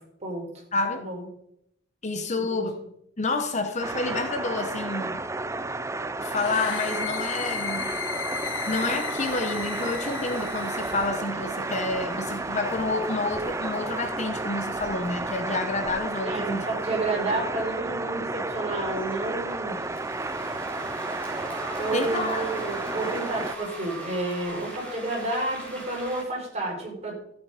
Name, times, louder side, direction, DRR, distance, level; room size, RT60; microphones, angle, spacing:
voice 1, 0.9-1.3 2.3-2.9 16.2-19.8 21.8-27.1, right 2 dB, 35° right, -1 dB, 4.8 m, -30 dB
voice 2, 2.0-2.7 3.2-5.2 6.2-7.9 8.7-16.7 21.9-22.4, left 3 dB, 35° left, 7 dB, 1.1 m, -29 dB
sound 1, 3.8-23.6, right 2 dB, 15° right, 0.5 m, -32 dB
sound 2, 6.3-11.1, left 8 dB, 75° left, 1.1 m, -35 dB
sound 3, 7.4-26.2, right 1 dB, 10° left, 4.8 m, -43 dB
15.0 x 8.5 x 5.1 m, 0.73 s
head